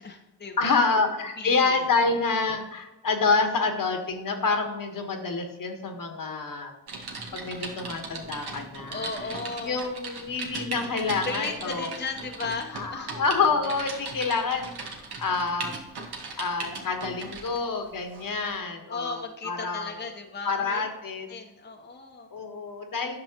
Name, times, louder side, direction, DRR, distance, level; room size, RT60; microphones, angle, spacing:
voice 1, 0.0-0.9 1.4-1.9 8.9-9.8 11.2-13.2 18.9-20.8 21.3-22.3, left 4 dB, 25° left, 2 dB, 0.9 m, -36 dB
voice 2, 0.6-6.7 7.3-9.1 9.6-11.9 12.7-15.7 16.4-19.9 20.4-21.3 22.3-23.2, left 4 dB, 55° left, 5 dB, 1.3 m, -27 dB
Typing, 6.9-17.6 18.1-18.3, right 3 dB, 70° right, 1.5 m, -38 dB
9.7 x 6.1 x 2.9 m, 1.0 s
supercardioid pair, 45°, 40 cm